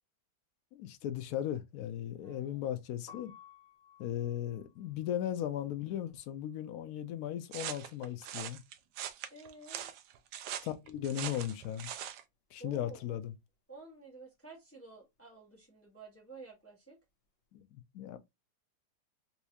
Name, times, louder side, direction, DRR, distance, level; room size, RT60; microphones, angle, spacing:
voice 1, 0.7-3.3 4.0-8.6 10.6-11.9 12.5-13.3 17.5-18.2, left 11 dB, 75° left, 0.8 m, -37 dB
voice 2, 2.2-2.7 9.3-9.9 12.6-13.2 13.7-17.0, right 3 dB, 10° left, 0.7 m, -52 dB
Piano, 3.0-8.9 9.1-10.7 11.0-17.4, left 8 dB, 45° left, 0.8 m, -61 dB
sound 1, 7.5-12.2, right 10 dB, 75° right, 1.2 m, -42 dB
4.3 x 2.3 x 2.7 m
omnidirectional pair, 2.1 m